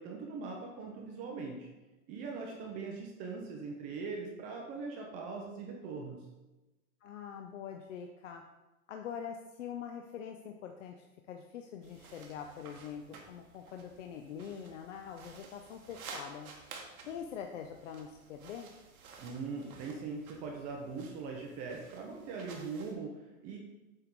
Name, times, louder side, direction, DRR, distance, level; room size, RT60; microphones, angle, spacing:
voice 1, 0.0-1.7 2.1-6.2 19.2-23.6, right 4 dB, 20° right, 1 dB, 0.6 m, -41 dB
voice 2, 7.0-8.4 8.9-16.5 17.0-18.7, left 8 dB, 60° left, 3 dB, 0.7 m, -44 dB
sound 1, 11.8-22.9, right 4 dB, 75° right, 1.5 m, -53 dB
7.9 x 3.6 x 4.5 m, 1.1 s
hypercardioid pair, 150°, 43 cm